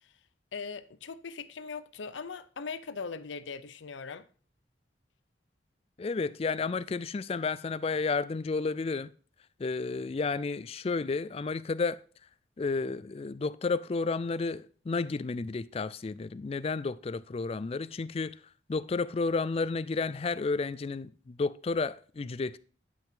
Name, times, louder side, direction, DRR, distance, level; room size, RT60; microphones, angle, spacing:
voice 1, 0.5-4.3, left 5 dB, 90° left, 0.6 m, -40 dB
voice 2, 6.0-9.1 9.6-12.0 12.6-18.3 18.7-22.6, left 4 dB, 35° left, 0.3 m, -31 dB
10.0 x 5.9 x 3.7 m
head